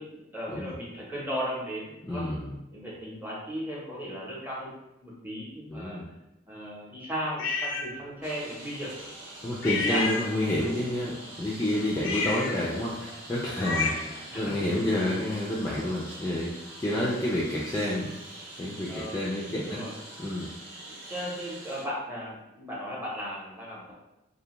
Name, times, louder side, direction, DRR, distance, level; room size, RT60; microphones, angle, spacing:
voice 1, 0.0-2.3 2.7-4.7 5.0-6.0 6.5-8.9 9.7-10.1 13.5-13.8 14.3-14.6 16.9-17.1 18.9-19.3 19.6-19.9 20.9-23.9, equal, 10° right, -5 dB, 0.7 m, -36 dB
voice 2, 2.0-2.5 5.7-6.1 9.4-16.5 16.8-18.1 18.6-19.8 20.2-20.5, left 1 dB, 15° left, -6 dB, 0.3 m, -29 dB
sound 1, 7.4-7.9 9.6-10.7 12.0-14.2, left 4 dB, 85° left, 0.4 m, -31 dB
Engine, 8.2-21.8, right 1 dB, 65° right, 0.9 m, -45 dB
2.5 x 2.2 x 2.9 m, 0.96 s
head